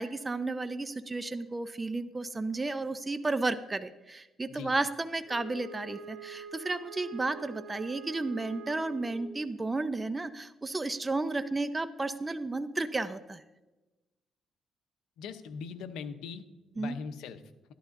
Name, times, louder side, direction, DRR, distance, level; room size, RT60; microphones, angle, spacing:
voice 1, 0.0-13.4 16.8-17.0, right 3 dB, 20° right, 11 dB, 0.6 m, -33 dB
Wind instrument woodwind instrument, 5.3-9.5, right 3 dB, 75° right, 1.9 m, -46 dB
voice 2, 15.2-16.4 16.7-17.4, left 6 dB, 90° left, 10 dB, 0.7 m, -40 dB
14.0 x 11.5 x 2.6 m, 1.1 s
cardioid pair, 90°, 0 cm